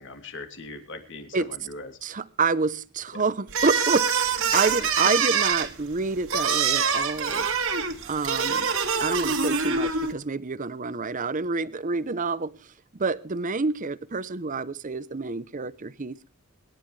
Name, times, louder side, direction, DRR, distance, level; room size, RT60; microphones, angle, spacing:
voice 1, 0.0-1.9 3.1-3.2 4.5-4.6, left 4 dB, 60° left, 2.9 m, -39 dB
voice 2, 2.0-7.5 8.1-8.7 9.0-12.5 13.0-16.3, right 4 dB, 35° right, 0.7 m, -28 dB
sound 1, 3.5-10.1, right 6 dB, 65° right, 2.1 m, -25 dB
25.5 x 11.0 x 3.2 m
head